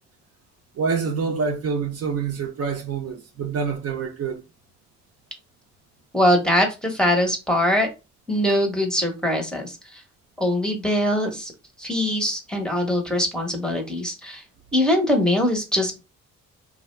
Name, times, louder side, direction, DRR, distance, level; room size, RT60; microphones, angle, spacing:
voice 1, 0.8-4.4, right 5 dB, 55° right, 0.6 m, -26 dB
voice 2, 6.1-7.9 8.3-10.0 10.4-11.5 11.8-14.4 14.7-16.0, left 1 dB, 5° left, 0.7 m, -22 dB
2.4 x 2.0 x 3.1 m
cardioid pair, 90°, 30 cm